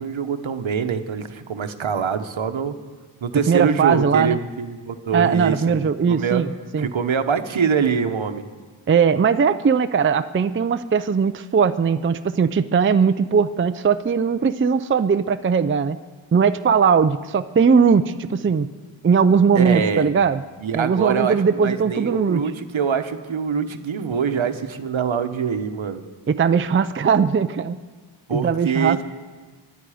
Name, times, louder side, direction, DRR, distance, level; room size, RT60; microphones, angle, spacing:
voice 1, 0.0-2.8 3.2-6.4 6.8-8.4 19.5-20.1 20.6-26.0 28.3-29.0, right 6 dB, 70° right, 8 dB, 1.0 m, -24 dB
voice 2, 3.5-4.4 5.1-6.5 6.7-6.9 8.9-16.0 16.3-18.7 19.0-20.4 20.7-22.4 26.3-27.8 28.3-29.0, right 6 dB, 30° right, 11 dB, 0.4 m, -19 dB
23.5 x 9.4 x 4.9 m, 1.4 s
wide cardioid pair, 95°, 48 cm